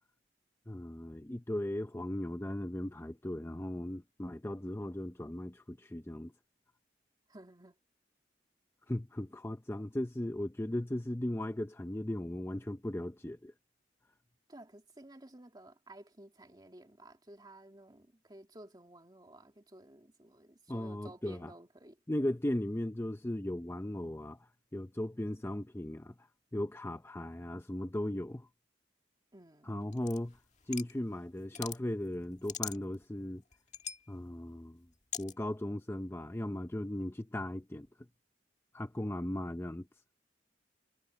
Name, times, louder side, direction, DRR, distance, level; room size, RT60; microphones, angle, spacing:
voice 1, 0.7-6.3 8.9-13.5 20.7-21.5 22.1-26.1 26.5-28.5 29.6-30.4 30.7-33.4 34.1-34.9 35.2-37.9 38.7-39.9, left 1 dB, 15° left, 0.6 m, -37 dB
voice 2, 7.3-7.8 14.5-22.0 29.3-29.7, right 1 dB, 25° right, 2.4 m, -54 dB
sound 1, 29.9-31.0 31.4-31.8 32.2-33.0 33.5-34.1 35.1-35.3, left 9 dB, 40° left, 1.8 m, -40 dB
head